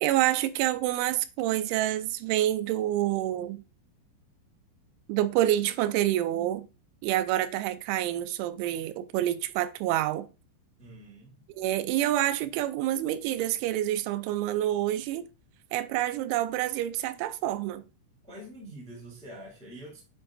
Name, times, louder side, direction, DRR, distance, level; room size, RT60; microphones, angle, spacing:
voice 1, 0.0-3.6 5.1-6.7 7.0-10.3 11.6-15.2 15.7-17.8, right 13 dB, 90° right, 3.0 m, -27 dB
voice 2, 10.8-11.3 18.2-20.0, right 1 dB, 5° left, 0.9 m, -45 dB
8.8 x 5.4 x 2.6 m
omnidirectional pair, 5.3 m